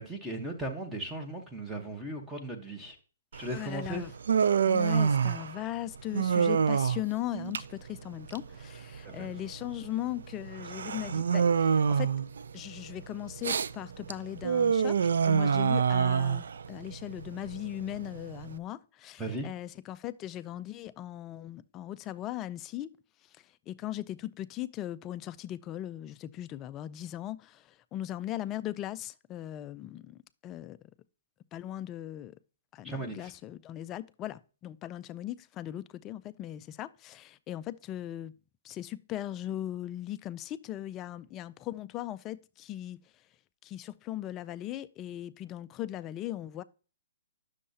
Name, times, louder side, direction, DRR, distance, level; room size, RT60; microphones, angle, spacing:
voice 1, 0.0-3.0 3.3-4.0 9.1-9.3 19.2-19.5 32.8-33.3, right 1 dB, 5° right, 1.0 m, -37 dB
Human voice, 3.3-18.6, right 6 dB, 75° right, 0.3 m, -28 dB
voice 2, 3.5-4.1 4.6-12.1 12.5-15.0 15.2-22.9 23.4-30.8 31.5-32.4 32.7-38.3 38.6-43.0 43.6-46.6, left 13 dB, 20° left, 0.3 m, -38 dB
9.8 x 6.4 x 2.7 m
hypercardioid pair, 155°, 0 cm